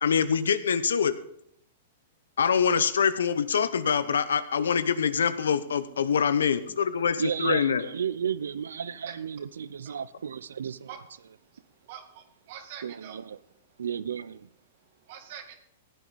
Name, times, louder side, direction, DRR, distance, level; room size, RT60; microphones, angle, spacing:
voice 1, 0.0-1.1 2.4-7.8, left 7 dB, 85° left, 0.8 m, -25 dB
voice 2, 7.2-10.9 12.8-13.4 13.8-14.5, right 7 dB, 85° right, 0.6 m, -33 dB
voice 3, 11.9-13.2 15.1-15.6, right 9 dB, 55° right, 2.1 m, -44 dB
15.5 x 9.3 x 4.1 m
hypercardioid pair, 125°, 0 cm